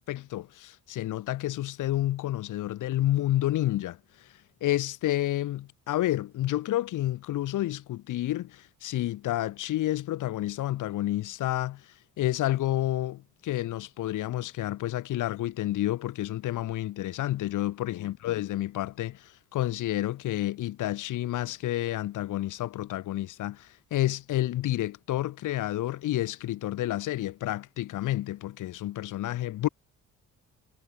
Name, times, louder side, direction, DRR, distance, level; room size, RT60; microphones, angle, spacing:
voice 1, 0.0-4.3 4.6-29.7, left 14 dB, 85° left, 3.0 m, -30 dB
cardioid pair, 90°, 30 cm